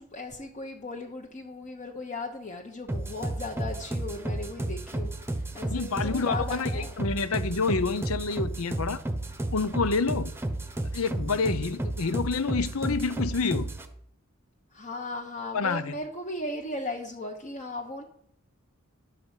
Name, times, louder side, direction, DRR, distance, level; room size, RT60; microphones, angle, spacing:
voice 1, 0.0-6.9 14.7-18.0, left 2 dB, 35° left, 1.1 m, -37 dB
sound 1, 2.9-13.9, right 1 dB, 10° right, 0.9 m, -32 dB
voice 2, 5.7-9.0 9.5-10.3 10.9-13.7 15.5-15.9, left 4 dB, 75° left, 0.7 m, -28 dB
11.0 x 5.0 x 8.1 m
head